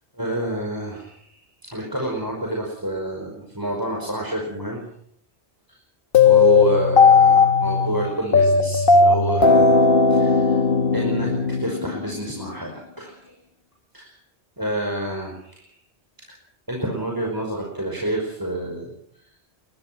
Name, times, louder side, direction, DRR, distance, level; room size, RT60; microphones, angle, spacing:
voice 1, 0.1-4.8 5.7-5.8 6.2-9.8 10.1-10.6 10.9-11.3 11.6-13.4 13.9-14.1 14.6-15.7 16.3-16.4 16.7-19.2, right 2 dB, 20° right, -1 dB, 5.4 m, -28 dB
sound 1, 6.1-12.3, left 4 dB, 55° left, 1.6 m, -16 dB
24.5 x 21.5 x 6.0 m, 0.67 s
omnidirectional pair, 1.1 m